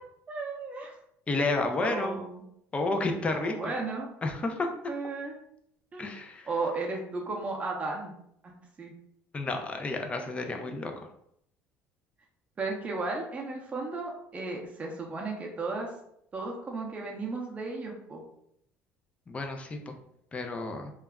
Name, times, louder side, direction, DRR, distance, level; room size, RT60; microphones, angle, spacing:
voice 1, 0.3-0.9 1.8-2.4 3.3-4.1 4.9-5.4 5.9-6.1 6.5-8.1 8.4-8.9 12.6-15.9 16.3-18.2, right 3 dB, 25° right, -1 dB, 0.6 m, -34 dB
voice 2, 1.3-2.2 2.7-3.7 4.2-4.7 6.0-6.5 9.3-10.9 19.3-19.9 20.3-20.9, left 2 dB, 20° left, 4 dB, 0.4 m, -31 dB
2.3 x 2.0 x 3.4 m, 0.73 s
cardioid pair, 125°, 5 cm